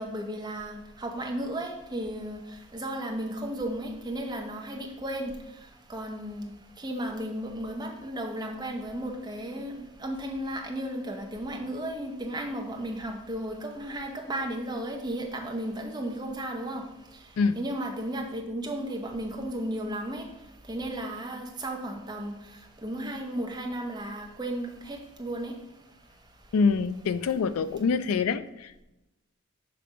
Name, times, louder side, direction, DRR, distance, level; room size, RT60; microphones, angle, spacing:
voice 1, 0.0-26.5, right 1 dB, 20° right, 1 dB, 0.8 m, -35 dB
voice 2, 26.5-28.8, left 5 dB, 85° left, 13 dB, 0.4 m, -25 dB
6.8 x 3.3 x 5.0 m, 0.95 s
head